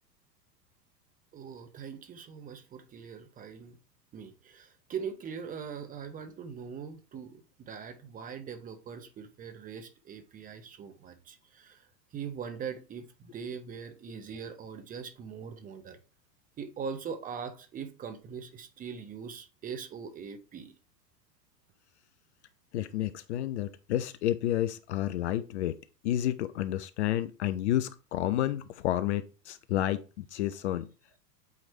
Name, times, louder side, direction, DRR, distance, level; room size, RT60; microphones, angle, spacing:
voice 1, 1.3-3.8 4.1-16.0 16.6-20.7, right 6 dB, 15° right, 0.7 m, -41 dB
voice 2, 22.7-25.8 26.0-30.9, left 12 dB, 45° left, 0.5 m, -30 dB
8.1 x 3.1 x 4.3 m
figure-of-eight pair, 95°, 50 cm